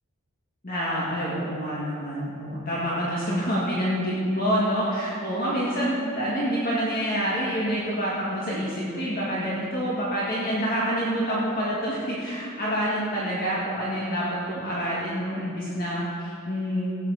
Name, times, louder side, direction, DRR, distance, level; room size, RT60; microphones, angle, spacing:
voice 1, 0.6-17.0, equal, 45° left, -7 dB, 2.1 m, -27 dB
16.5 x 9.1 x 4.1 m, 2.3 s
head